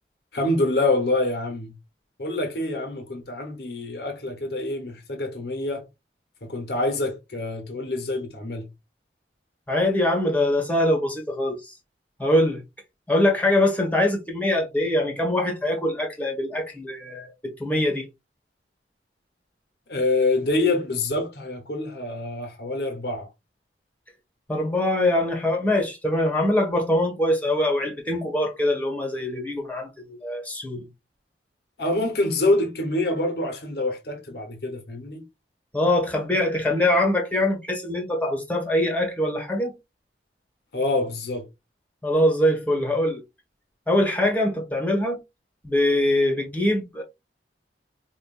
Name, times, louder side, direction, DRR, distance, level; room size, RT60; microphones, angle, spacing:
voice 1, 0.3-1.8 2.2-5.9 6.4-8.7 19.9-23.3 31.8-35.2 40.7-41.5, left 2 dB, 65° left, 1.0 m, -26 dB
voice 2, 9.7-11.8 12.2-12.6 13.1-18.1 24.5-30.9 35.7-39.7 42.0-43.2 43.9-45.2 45.6-47.0, left 1 dB, 10° left, 1.3 m, -23 dB
5.2 x 2.6 x 2.4 m
head